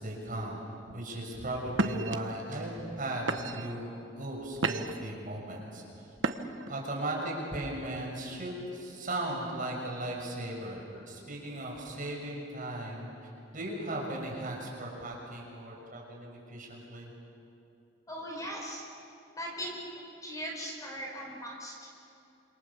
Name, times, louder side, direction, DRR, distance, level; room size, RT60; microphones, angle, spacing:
voice 1, 0.0-2.7 3.0-3.9 4.2-5.8 6.7-13.1 13.5-17.1, right 1 dB, 45° right, -1 dB, 6.4 m, -37 dB
sound 1, 0.9-1.2 1.7-2.2 2.8-3.0 3.3-3.8 4.3-5.1 6.2-6.7, right 3 dB, 85° right, 1.1 m, -32 dB
voice 2, 18.1-18.8 19.4-19.8 20.2-21.7, equal, 20° left, 0 dB, 5.2 m, -39 dB
27.5 x 26.0 x 7.2 m, 2.7 s
head